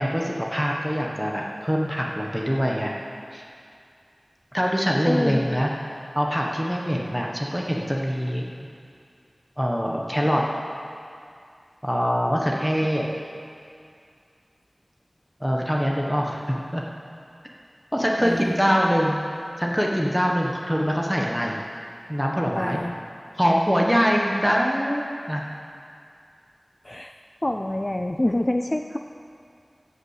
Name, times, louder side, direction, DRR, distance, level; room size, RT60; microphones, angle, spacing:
voice 1, 0.0-3.0 3.3-3.4 4.5-5.7 6.1-8.5 9.6-10.4 11.8-13.1 15.4-16.8 17.9-19.2 19.6-21.6 22.1-22.8 23.3-25.4, equal, 5° right, -1 dB, 1.2 m, -23 dB
voice 2, 5.1-5.7 18.2-18.5 22.5-23.0 26.8-27.1 27.4-29.0, left 1 dB, 30° left, 5 dB, 0.4 m, -26 dB
14.0 x 5.6 x 8.3 m, 2.4 s
wide cardioid pair, 40°, 0 cm